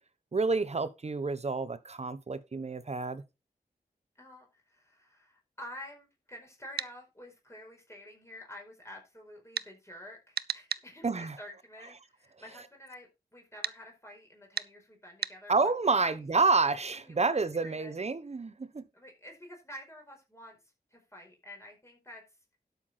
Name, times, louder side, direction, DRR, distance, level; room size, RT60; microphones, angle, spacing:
voice 1, 0.3-3.2 11.0-11.4 15.5-18.8, right 4 dB, 40° right, 1.2 m, -29 dB
voice 2, 4.1-16.5 16.9-17.3 17.6-18.0 18.9-20.6 20.9-22.2, left 1 dB, 15° left, 5.1 m, -49 dB
sound 1, 6.8-6.9 9.5-9.7 10.3-10.9 13.6-13.8 14.5-14.7 15.2-15.4, right 7 dB, 80° right, 0.5 m, -34 dB
12.0 x 7.1 x 4.4 m
wide cardioid pair, 95°, 16 cm